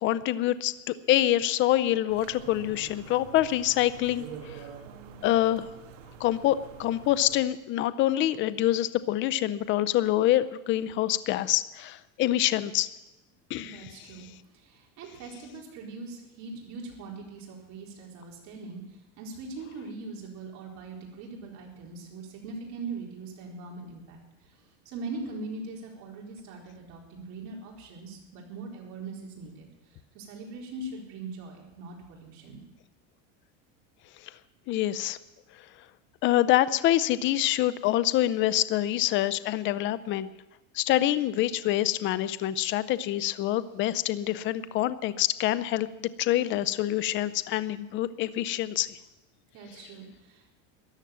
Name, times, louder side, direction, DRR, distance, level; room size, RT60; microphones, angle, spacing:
voice 1, 0.0-4.6 5.2-5.7 6.2-12.9 13.5-13.8 34.7-35.2 36.2-40.3 40.7-48.9, left 13 dB, 30° left, 15 dB, 0.5 m, -26 dB
sound 1, 2.1-7.4, right 7 dB, 75° right, 1.8 m, -46 dB
voice 2, 13.7-14.3 14.5-24.6 24.8-32.6 49.5-50.5, right 3 dB, 45° right, -1 dB, 4.2 m, -41 dB
14.0 x 10.5 x 7.5 m, 1.0 s
supercardioid pair, 145°, 38 cm